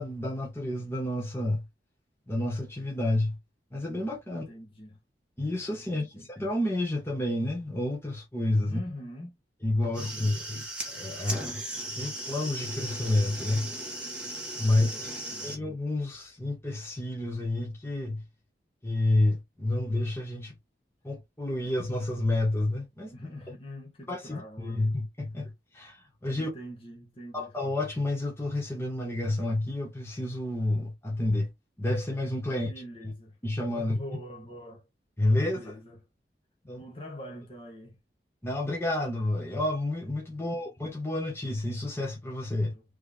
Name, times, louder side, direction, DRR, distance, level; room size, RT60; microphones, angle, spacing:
voice 1, 0.0-1.6 2.3-3.4 3.7-4.4 5.4-8.8 9.6-11.6 11.9-13.7 14.6-15.1 15.4-18.2 18.8-20.5 21.0-23.1 24.1-26.5 27.3-31.5 31.8-32.7 33.4-34.0 35.2-35.6 36.7-36.8 38.4-42.7, left 1 dB, 15° left, 1.2 m, -29 dB
voice 2, 4.3-5.0 5.9-6.3 8.6-9.4 9.9-10.3 14.7-15.6 23.1-25.0 26.3-27.5 32.5-33.4 33.7-34.9 35.4-36.0 36.6-38.0 40.4-40.6 42.7-42.8, equal, 30° left, 1.1 m, -44 dB
sound 1, 9.8-15.6, right 1 dB, 5° right, 1.6 m, -37 dB
4.2 x 3.3 x 3.5 m
head